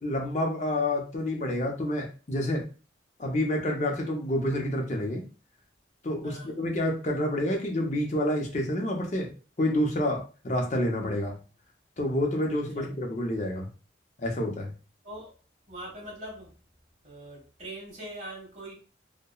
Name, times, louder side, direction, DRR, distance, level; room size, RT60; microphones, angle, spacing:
voice 1, 0.0-2.6 3.2-5.2 6.0-9.3 9.6-11.4 12.0-13.7 14.2-14.7, left 1 dB, 40° left, 0.6 m, -28 dB
voice 2, 15.7-16.5 17.0-18.7, right 1 dB, 40° right, 1.4 m, -42 dB
2.8 x 2.1 x 2.3 m
head